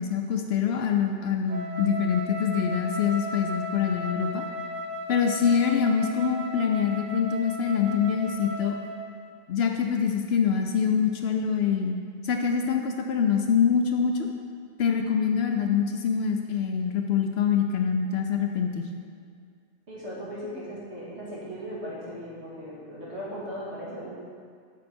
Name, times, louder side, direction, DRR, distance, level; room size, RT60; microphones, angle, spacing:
voice 1, 0.0-4.4 5.1-8.8 9.5-12.0 12.2-14.3 14.8-18.9, left 7 dB, 65° left, 4 dB, 0.7 m, -25 dB
Wind instrument woodwind instrument, 1.5-9.1, left 1 dB, 80° right, 1.1 m, -36 dB
voice 2, 19.9-24.1, equal, 65° right, -7 dB, 2.3 m, -37 dB
7.5 x 6.5 x 4.3 m, 2.1 s
omnidirectional pair, 1.3 m